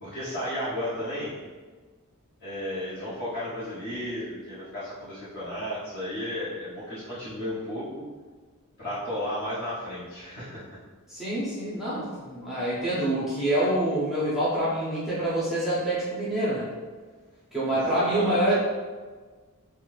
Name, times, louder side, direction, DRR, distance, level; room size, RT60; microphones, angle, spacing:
voice 1, 0.0-1.3 2.4-8.0 8.8-10.6 17.7-18.5, left 1 dB, 50° left, -11 dB, 0.9 m, -33 dB
voice 2, 11.1-16.7 17.5-18.5, right 1 dB, ahead, -10 dB, 0.7 m, -26 dB
2.7 x 2.2 x 3.1 m, 1.4 s
head